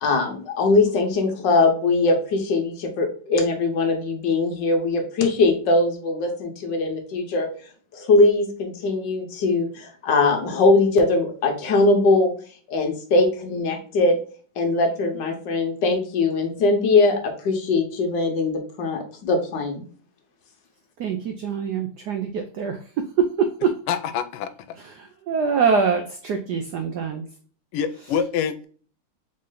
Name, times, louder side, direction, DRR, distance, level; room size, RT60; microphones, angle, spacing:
voice 1, 0.0-7.5 7.9-12.3 12.7-14.2 14.6-19.8, left 3 dB, 60° left, 4 dB, 1.4 m, -21 dB
voice 2, 21.0-23.8 24.8-27.2, right 5 dB, 85° right, 5 dB, 0.9 m, -24 dB
voice 3, 23.9-24.5 27.7-28.7, left 7 dB, 85° left, 11 dB, 1.5 m, -25 dB
4.1 x 3.2 x 3.7 m, 0.42 s
omnidirectional pair, 2.4 m